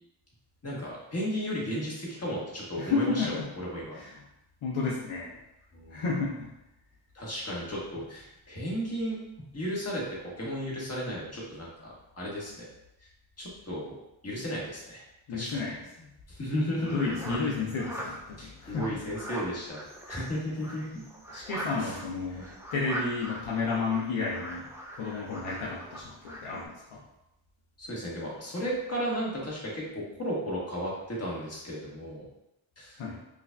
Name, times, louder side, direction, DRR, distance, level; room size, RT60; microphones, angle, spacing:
voice 1, 0.6-4.0 5.7-6.0 7.1-9.2 9.5-12.7 13.4-14.0 14.2-15.0 15.3-15.7 16.3-17.1 18.4-19.8 20.1-21.0 21.8-22.0 22.3-22.5 27.8-32.3 32.8-33.0, equal, 30° left, -4 dB, 1.3 m, -34 dB
voice 2, 2.8-3.5 3.9-4.2 4.6-5.4 5.9-6.5 15.3-15.8 16.9-19.0 21.3-24.6 25.0-27.0 33.0-33.2, left 4 dB, 70° left, -5 dB, 0.8 m, -32 dB
sound 1, 16.8-26.6, equal, 5° right, 0.6 m, -41 dB
4.9 x 2.5 x 2.2 m, 0.88 s
cardioid pair, 85°, 50 cm